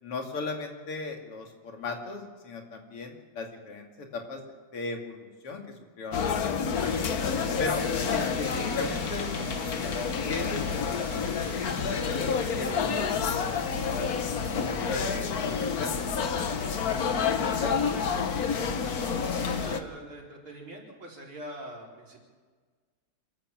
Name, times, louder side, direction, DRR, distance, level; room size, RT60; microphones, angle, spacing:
voice 1, 0.0-4.4 4.7-5.6 6.0-7.0 7.6-7.8 8.1-10.0 10.3-13.0 13.4-16.6 16.9-17.7, left 3 dB, 85° left, 3 dB, 3.2 m, -37 dB
sound 1, 6.1-19.8, left 6 dB, 50° left, 1.3 m, -29 dB
sound 2, 6.7-19.7, left 2 dB, 25° left, 1.5 m, -42 dB
voice 2, 19.3-22.2, right 1 dB, 65° right, -2 dB, 5.1 m, -43 dB
27.0 x 12.5 x 7.6 m, 1.5 s
omnidirectional pair, 2.4 m